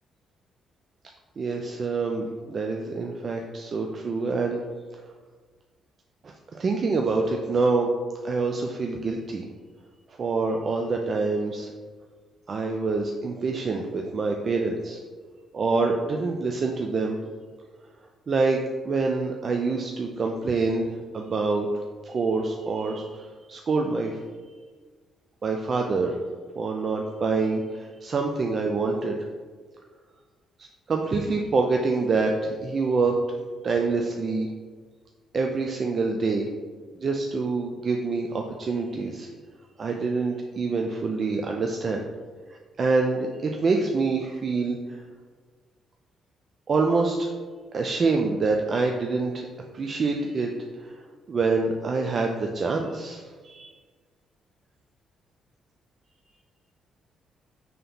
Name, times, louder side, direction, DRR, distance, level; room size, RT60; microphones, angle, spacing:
voice 1, 1.4-4.6 6.2-7.9 8.2-9.5 10.2-11.7 12.5-15.0 15.5-17.2 18.3-21.7 22.0-24.2 25.4-26.2 26.6-29.2 30.6-33.4 33.6-34.5 35.3-36.5 37.0-39.3 39.8-42.0 42.5-45.0 46.7-47.3 47.7-49.5 49.7-50.5 50.8-51.0 51.3-53.7, right 3 dB, 45° right, 2 dB, 0.3 m, -26 dB
3.4 x 2.8 x 3.8 m, 1.5 s
cardioid pair, 90°, 0 cm